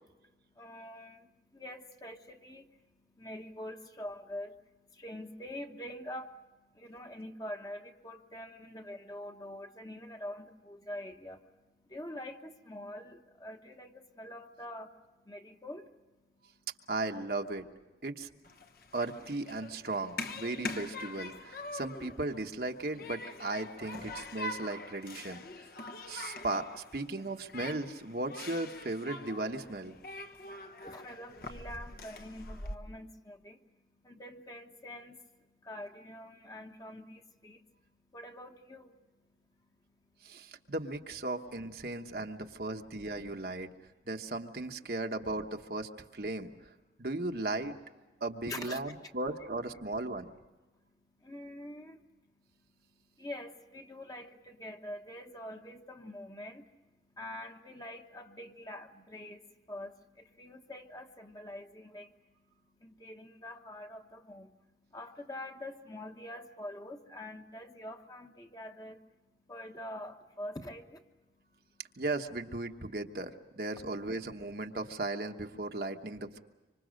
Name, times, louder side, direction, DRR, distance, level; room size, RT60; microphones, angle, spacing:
voice 1, 0.2-16.7 18.6-18.9 21.7-21.8 30.2-40.7 42.1-42.2 43.9-44.0 44.8-44.9 46.9-47.1 48.5-48.8 50.7-71.8, left 1 dB, 20° left, 4 dB, 1.2 m, -46 dB
voice 2, 16.9-17.6 18.0-18.3 18.9-25.4 26.1-29.9 40.2-43.7 44.1-46.5 47.0-47.8 48.2-50.2 72.0-76.4, right 2 dB, 60° right, 5 dB, 1.2 m, -36 dB
Human group actions, 18.4-32.7, left 2 dB, 55° left, 1.1 m, -44 dB
26.0 x 25.5 x 6.4 m, 1.2 s
head